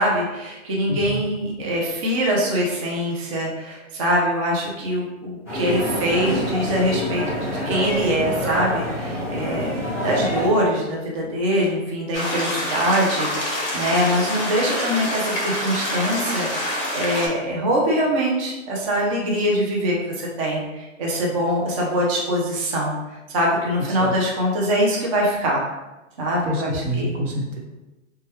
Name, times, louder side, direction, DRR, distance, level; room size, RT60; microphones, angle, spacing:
voice 1, 0.0-22.9 23.3-25.6 26.2-27.2, equal, 30° right, -3 dB, 0.4 m, -23 dB
voice 2, 0.9-1.2 23.9-24.2 26.4-27.6, equal, 75° right, 0 dB, 0.9 m, -27 dB
sound 1, 5.5-10.5, equal, 5° right, 0.8 m, -26 dB
sound 2, 12.1-17.3, left 1 dB, 20° left, 0.7 m, -26 dB
3.0 x 2.2 x 3.1 m, 1.1 s
hypercardioid pair, 150°, 37 cm